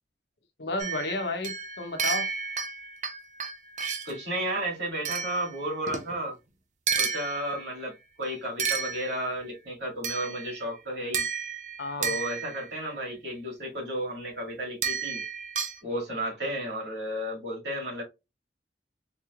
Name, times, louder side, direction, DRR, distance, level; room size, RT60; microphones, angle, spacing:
voice 1, 0.6-2.3 11.8-12.2, left 2 dB, 70° left, 0.8 m, -32 dB
sound 1, 0.8-4.2 5.1-6.1 6.9-7.8 8.6-9.5 10.0-10.6 11.1-12.8 14.8-15.8, right 6 dB, 40° right, 0.6 m, -32 dB
voice 2, 4.1-6.4 7.0-7.9 8.2-11.2 12.0-15.2 15.8-18.0, right 1 dB, 80° right, 2.1 m, -33 dB
4.0 x 3.1 x 2.4 m
head